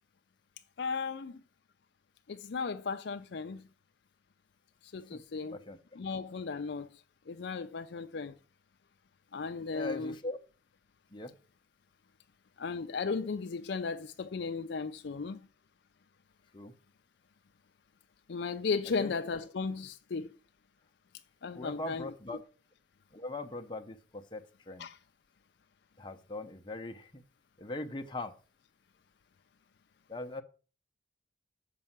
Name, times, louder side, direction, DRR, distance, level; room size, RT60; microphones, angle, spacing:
voice 1, 0.8-1.4 2.3-3.6 4.9-5.6 6.0-7.0 7.3-8.4 9.3-10.1 12.6-15.4 18.3-20.4 21.4-22.1 24.8-25.0, left 4 dB, 60° left, 0.4 m, -35 dB
voice 2, 9.7-10.4 11.1-11.3 16.5-16.7 19.0-19.1 21.6-22.4 23.1-24.9 26.0-27.2 27.6-28.3 30.1-30.4, left 2 dB, 25° left, 0.7 m, -40 dB
6.9 x 5.4 x 7.2 m
head